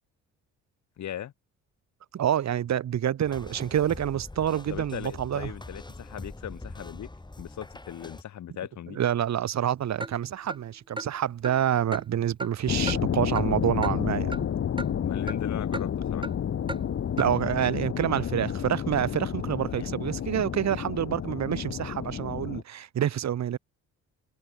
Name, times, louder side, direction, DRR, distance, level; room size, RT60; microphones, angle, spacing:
voice 1, 1.0-1.3 4.7-7.1 7.4-9.0 15.0-16.3 19.8-19.9, left 10 dB, 70° left, 6.4 m, -38 dB
voice 2, 2.1-5.5 8.9-14.5 17.2-23.6, right 10 dB, 65° right, 3.4 m, -27 dB
sound 1, 3.2-8.2, left 2 dB, 15° left, 6.5 m, -43 dB
Clock, 10.0-10.1 10.5-10.6 11.0-11.1 11.4-11.6 11.9-12.0 12.4-12.5 12.9-13.0 13.4-13.5 13.8-14.0 14.3-14.4 14.8-14.9 15.3-15.4 15.7-15.9 16.2-16.3 16.7-16.8 17.2-17.3, right 2 dB, 15° right, 6.7 m, -34 dB
sound 2, 12.7-22.6, left 9 dB, 50° left, 1.6 m, -30 dB
cardioid pair, 90°, 30 cm